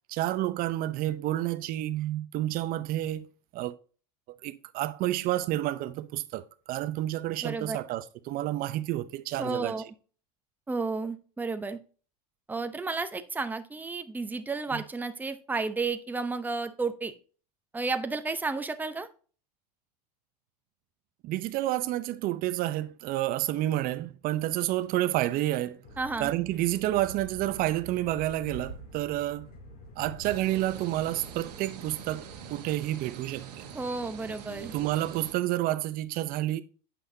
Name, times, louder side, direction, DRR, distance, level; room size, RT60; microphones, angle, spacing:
voice 1, 0.1-3.3 3.5-3.7 4.4-9.7 14.7-14.8 21.2-25.8 26.2-29.5 30.0-33.6 34.7-36.6, right 15 dB, 45° right, 0.7 m, -30 dB
voice 2, 7.4-7.8 9.4-9.8 10.7-11.8 12.5-17.1 17.7-19.1 26.0-26.3 33.7-34.7, right 3 dB, 10° right, 0.7 m, -32 dB
sound 1, 25.8-32.4, right 1 dB, 75° left, 4.0 m, -46 dB
sound 2, 30.2-35.3, right 8 dB, 80° right, 1.2 m, -44 dB
8.4 x 5.6 x 2.7 m
hypercardioid pair, 105°, 20 cm